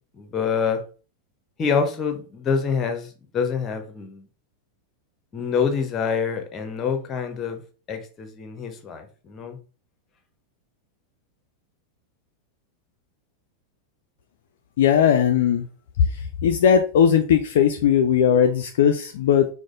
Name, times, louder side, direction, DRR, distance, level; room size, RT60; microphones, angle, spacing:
voice 1, 0.1-0.8 1.6-4.2 5.3-7.6 7.9-9.6, left 6 dB, 25° left, 0.6 m, -26 dB
voice 2, 14.8-15.7 16.4-19.5, left 8 dB, 55° left, 0.3 m, -18 dB
4.7 x 2.0 x 2.5 m
figure-of-eight pair, 90°, 0 cm